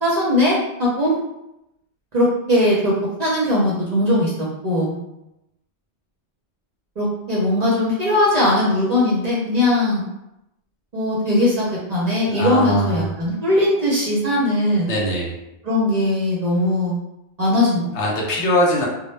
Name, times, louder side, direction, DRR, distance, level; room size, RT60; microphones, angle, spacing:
voice 1, 0.0-1.1 2.1-2.9 3.2-4.3 4.6-5.0 7.0-10.0 10.9-14.9 15.6-17.0 17.4-17.9, left 1 dB, 50° right, -5 dB, 0.5 m, -19 dB
voice 2, 12.3-13.0 14.9-15.3 18.0-18.8, left 1 dB, 85° left, -2 dB, 1.0 m, -21 dB
2.0 x 2.0 x 3.1 m, 0.87 s
omnidirectional pair, 1.1 m